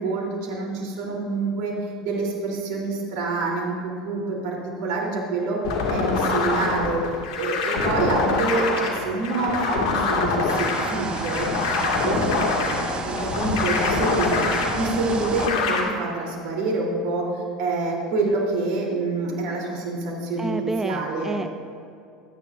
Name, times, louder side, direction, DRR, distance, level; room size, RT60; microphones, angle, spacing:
voice 1, 0.0-5.6 5.9-7.0 7.4-14.5 14.7-21.4, right 3 dB, 65° right, -1 dB, 3.4 m, -27 dB
sound 1, 5.6-15.8, left 4 dB, 70° left, 2.1 m, -25 dB
sound 2, 10.5-15.5, right 3 dB, 30° right, 1.4 m, -31 dB
voice 2, 20.4-21.5, right 2 dB, 10° right, 8 dB, 0.5 m, -29 dB
24.0 x 10.0 x 2.6 m, 2.5 s
hypercardioid pair, 85°, 3 cm